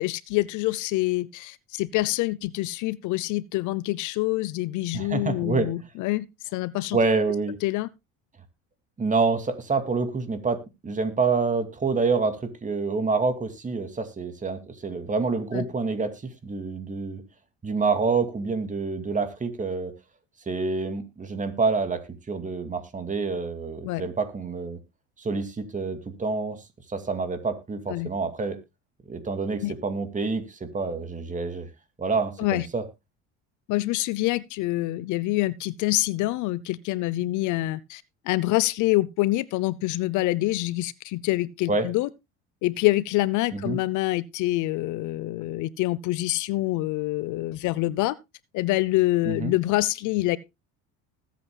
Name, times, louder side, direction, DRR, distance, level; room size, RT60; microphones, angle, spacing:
voice 1, 0.0-6.3 6.5-7.0 7.6-7.9 15.5-15.6 23.8-24.0 27.9-28.1 29.6-29.7 32.4-32.7 33.7-42.1 42.6-48.1 48.5-50.4, left 18 dB, 65° left, 0.7 m, -26 dB
voice 2, 4.9-5.7 6.9-7.6 9.0-17.2 17.6-19.9 20.5-22.0 22.3-24.8 25.2-26.6 26.9-28.6 29.1-31.7 32.0-32.8 41.7-41.9 43.5-43.8 49.2-49.5, right 4 dB, 25° right, 2.5 m, -27 dB
20.0 x 8.5 x 2.3 m
supercardioid pair, 105°, 32 cm